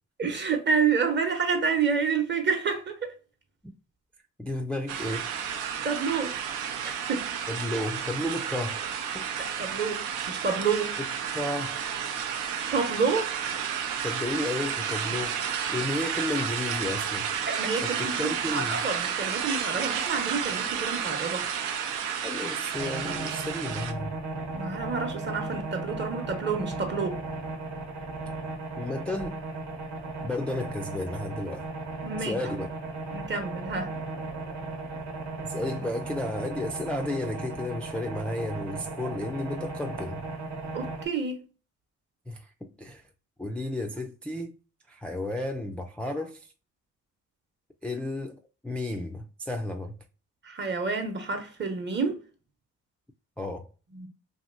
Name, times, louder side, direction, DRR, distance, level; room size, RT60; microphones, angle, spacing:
voice 1, 0.2-3.1 5.8-6.3 6.8-7.3 9.4-11.0 12.7-13.3 17.5-21.5 24.5-27.2 32.0-32.4 33.1-33.9 40.7-41.4 50.4-52.2 53.9-54.1, right 5 dB, 35° right, 0.9 m, -29 dB
voice 2, 4.4-5.3 7.5-8.9 9.1-9.3 11.0-11.1 11.3-11.8 14.0-15.4 15.7-17.3 17.8-18.9 22.2-24.1 28.8-29.4 30.2-31.6 32.2-32.7 35.4-40.2 42.3-43.0 43.4-44.6 44.9-46.5 47.8-50.0 53.4-53.7, left 1 dB, 5° left, 0.3 m, -33 dB
sound 1, 4.9-23.9, right 8 dB, 85° right, 0.6 m, -31 dB
sound 2, 22.7-41.1, right 3 dB, 65° right, 1.0 m, -36 dB
2.8 x 2.7 x 2.4 m
cardioid pair, 90°, 30 cm